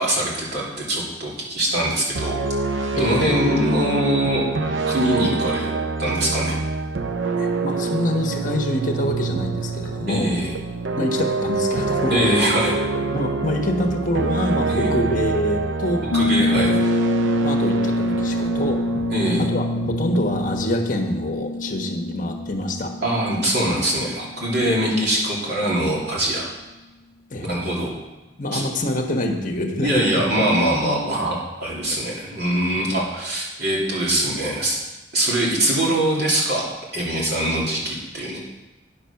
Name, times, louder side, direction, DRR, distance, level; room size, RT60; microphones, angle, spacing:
voice 1, 0.0-2.4 2.9-4.4 4.9-5.7 6.0-6.6 10.1-10.5 12.1-12.8 14.7-14.9 16.1-16.8 19.1-19.4 23.0-26.5 27.5-27.9 28.5-28.6 29.8-34.8 35.1-36.7 36.9-38.4, right 1 dB, 60° right, -5 dB, 2.9 m, -22 dB
sound 1, 2.2-21.3, right 3 dB, 80° right, 0.6 m, -26 dB
voice 2, 3.0-3.3 7.3-10.3 11.0-12.5 13.1-16.1 17.2-18.8 19.4-22.9 24.6-24.7 27.3-27.5 28.4-30.2 31.9-32.0 32.8-32.9, left 1 dB, 45° left, 4 dB, 1.2 m, -25 dB
Piano, 16.1-24.6, left 3 dB, 75° left, 0.4 m, -25 dB
9.7 x 7.0 x 5.8 m, 1.1 s
head